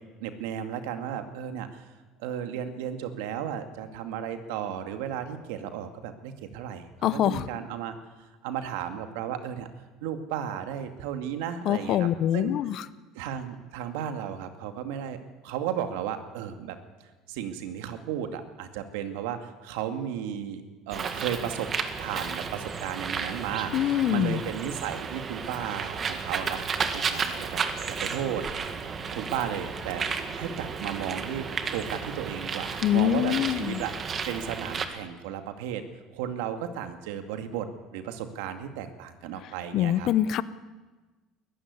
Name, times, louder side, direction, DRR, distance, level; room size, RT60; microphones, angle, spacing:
voice 1, 0.2-1.9 2.2-7.9 8.4-9.7 10.0-12.5 13.1-15.2 15.4-16.8 17.3-21.7 22.0-28.4 29.1-33.9 34.3-35.8 36.1-37.7 37.9-40.1, right 9 dB, 90° right, 7 dB, 2.3 m, -34 dB
voice 2, 7.0-7.4 11.6-12.8 23.7-24.4 32.8-33.8 39.7-40.4, left 11 dB, 55° left, 16 dB, 0.9 m, -24 dB
Bird, 20.9-34.9, right 5 dB, 35° right, 1.9 m, -33 dB
20.5 x 14.5 x 9.7 m, 1.2 s
cardioid pair, 115°, 0 cm